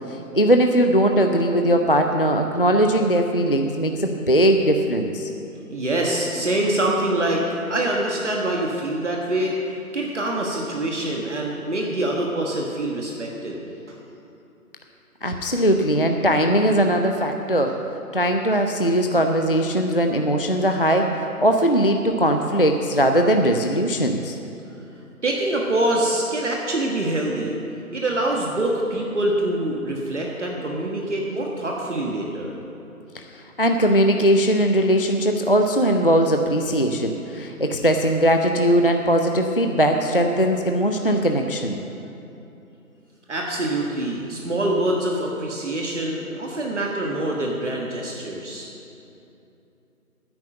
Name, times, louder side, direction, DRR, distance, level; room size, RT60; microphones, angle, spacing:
voice 1, 0.1-5.3 15.2-17.8 18.1-24.4 33.1-33.3 33.6-41.8, equal, 40° left, 4 dB, 0.4 m, -20 dB
voice 2, 5.7-13.6 25.2-27.6 27.9-32.6 43.3-48.7, right 1 dB, 50° right, -1 dB, 1.5 m, -25 dB
10.0 x 9.5 x 7.6 m, 2.8 s
figure-of-eight pair, 170°, 44 cm